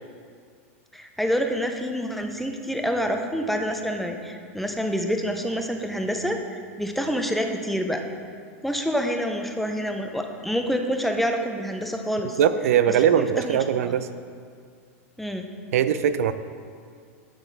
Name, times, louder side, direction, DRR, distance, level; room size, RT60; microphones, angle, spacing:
voice 1, 0.9-8.0 8.6-12.4 12.9-13.9 15.2-15.5, equal, ahead, 4 dB, 0.5 m, -27 dB
voice 2, 12.4-14.1 15.7-16.3, right 9 dB, 80° right, 12 dB, 0.4 m, -21 dB
11.5 x 3.9 x 4.0 m, 2.1 s
supercardioid pair, 140°, 8 cm